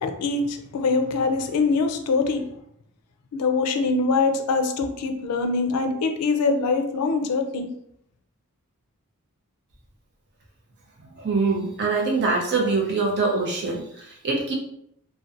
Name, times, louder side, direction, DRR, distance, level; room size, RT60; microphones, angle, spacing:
voice 1, 0.0-2.4 3.3-7.7, left 4 dB, 90° left, 6 dB, 0.4 m, -23 dB
voice 2, 11.2-14.5, right 3 dB, 50° right, -1 dB, 0.5 m, -24 dB
2.5 x 2.1 x 2.4 m, 0.72 s
head